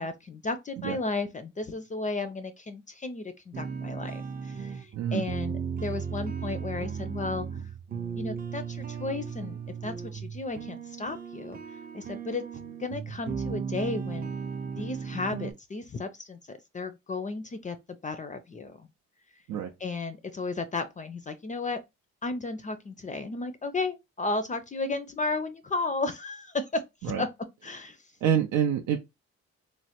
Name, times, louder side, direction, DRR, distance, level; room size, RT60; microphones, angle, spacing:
voice 1, 0.0-7.5 8.2-11.6 11.9-12.4 12.8-14.3 14.8-17.8 18.0-18.9 19.8-21.8 22.2-27.3 27.6-28.0, left 3 dB, 25° left, 0.4 m, -34 dB
sound 1, 3.5-15.5, right 6 dB, 30° right, 0.5 m, -36 dB
voice 2, 28.2-29.0, right 9 dB, 85° right, 0.5 m, -26 dB
3.1 x 2.1 x 2.8 m
cardioid pair, 90°, 30 cm